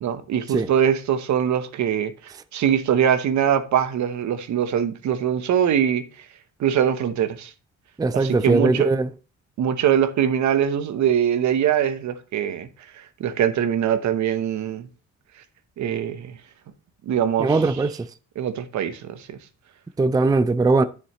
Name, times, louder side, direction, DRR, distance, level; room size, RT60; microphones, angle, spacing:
voice 1, 0.0-2.1 2.5-6.0 6.6-7.5 8.1-8.9 9.6-12.7 13.2-14.9 15.8-16.3 17.1-17.6 18.4-19.3, right 9 dB, 70° right, 1.0 m, -22 dB
voice 2, 8.0-9.1 17.4-18.1 20.0-20.8, right 3 dB, 15° right, 0.4 m, -20 dB
9.3 x 7.1 x 3.1 m
cardioid pair, 90°, 30 cm